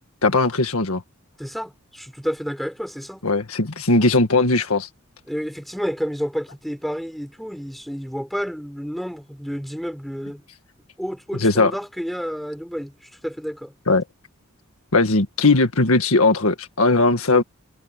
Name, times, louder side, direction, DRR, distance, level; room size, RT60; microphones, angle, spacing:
voice 1, 0.2-1.0 3.2-4.9 11.4-11.7 13.9-14.0 14.9-17.4, left 3 dB, 85° left, 1.8 m, -18 dB
voice 2, 1.4-3.2 5.3-10.4 11.0-13.7, equal, ahead, 4.7 m, -30 dB
head